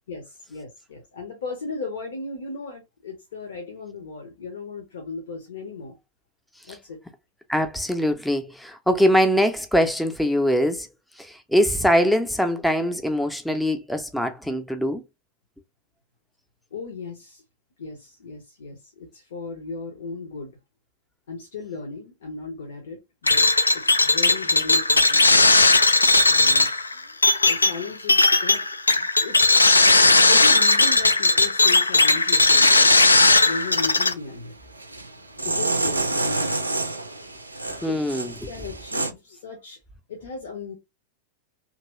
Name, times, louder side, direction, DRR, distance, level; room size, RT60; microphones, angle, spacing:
voice 1, 0.1-5.9 6.7-7.0 16.7-17.4 17.8-20.5 21.3-25.6 26.2-27.1 27.4-29.5 30.3-33.0 33.4-34.5 35.4-36.6 37.5-38.0 38.5-39.8 40.1-40.8, left 3 dB, 65° left, 0.8 m, -36 dB
voice 2, 7.5-10.9 11.2-15.0 37.8-38.3, equal, 5° left, 0.5 m, -22 dB
sound 1, 23.3-34.1, left 3 dB, 80° left, 0.3 m, -17 dB
sound 2, 33.6-34.0 34.8-39.1, right 2 dB, 85° right, 0.4 m, -28 dB
2.9 x 2.6 x 2.9 m
figure-of-eight pair, 90°, 0 cm